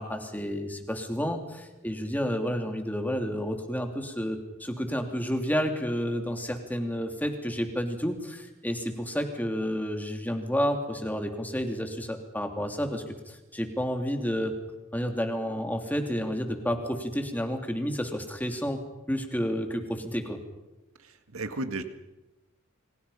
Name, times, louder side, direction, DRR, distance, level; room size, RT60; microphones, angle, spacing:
voice 1, 0.0-14.6 14.9-18.8 19.1-20.4, equal, 10° left, 4 dB, 2.9 m, -30 dB
voice 2, 21.0-21.8, right 2 dB, 85° right, 8 dB, 1.9 m, -34 dB
29.5 x 25.5 x 5.7 m, 1.0 s
head